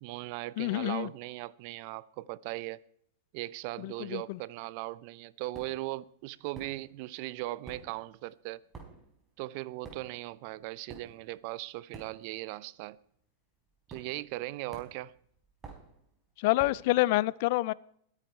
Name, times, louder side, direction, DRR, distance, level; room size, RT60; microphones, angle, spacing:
voice 1, 0.0-2.8 3.3-8.6 9.4-13.0 13.9-15.1, right 18 dB, 55° right, 0.6 m, -39 dB
voice 2, 0.6-1.1 3.8-4.4 16.4-17.7, left 19 dB, 55° left, 0.5 m, -27 dB
sound 1, 5.5-5.9 6.5-7.2 7.4-12.6 12.8-13.1 13.9-14.4 14.7-17.0, right 4 dB, 20° right, 4.5 m, -50 dB
21.0 x 9.8 x 4.5 m
hypercardioid pair, 115°, 0 cm